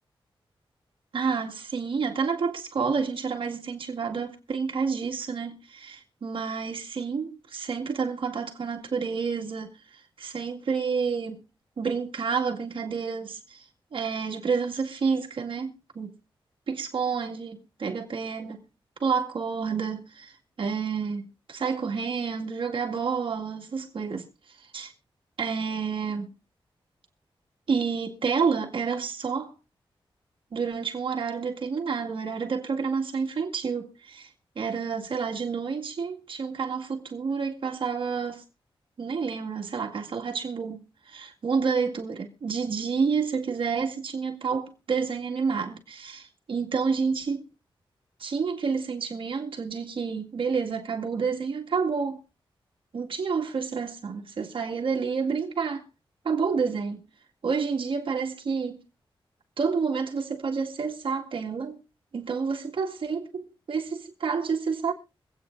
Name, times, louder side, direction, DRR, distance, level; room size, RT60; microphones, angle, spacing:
voice 1, 1.1-11.4 11.8-16.1 16.7-18.6 19.0-24.2 24.7-24.9 25.4-26.3 27.7-29.5 30.5-34.3 34.6-38.4 39.0-47.5 48.2-52.2 52.9-55.9 56.2-57.0 57.4-58.8 59.6-61.8 62.1-64.9, right 5 dB, 65° right, 2.1 m, -29 dB
25.0 x 8.7 x 2.6 m
wide cardioid pair, 130°, 9 cm